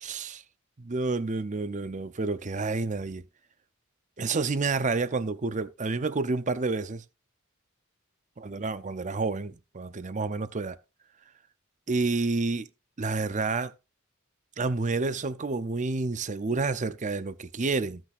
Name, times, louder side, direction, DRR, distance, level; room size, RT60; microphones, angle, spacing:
voice 1, 0.0-0.4 0.8-3.2 4.2-7.0 8.4-10.8 11.9-12.7 13.0-13.7 14.6-18.0, right 3 dB, 35° right, 0.6 m, -29 dB
15.5 x 6.1 x 2.6 m
head